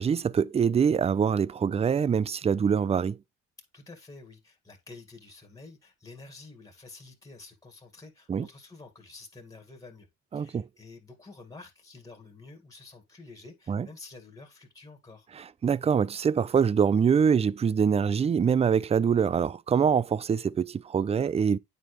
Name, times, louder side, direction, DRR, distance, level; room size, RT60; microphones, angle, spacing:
voice 1, 0.0-3.2 8.3-8.5 10.3-10.7 13.7-13.9 15.6-21.6, right 7 dB, 20° right, 0.3 m, -24 dB
voice 2, 3.7-10.1 10.3-15.3, left 3 dB, 10° left, 1.9 m, -49 dB
9.1 x 4.4 x 3.2 m
cardioid pair, 90°, 30 cm